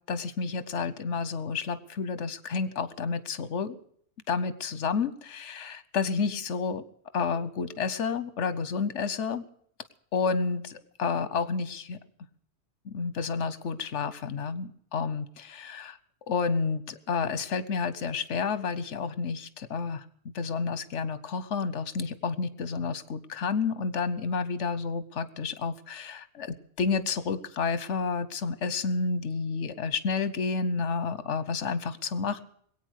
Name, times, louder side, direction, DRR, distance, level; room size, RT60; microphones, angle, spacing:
voice 1, 0.1-3.8 4.3-6.8 7.1-9.4 10.1-12.0 12.8-16.0 16.3-20.0 20.3-32.4, left 5 dB, 80° left, 15 dB, 1.2 m, -30 dB
21.0 x 8.8 x 6.5 m, 0.62 s
omnidirectional pair, 1.2 m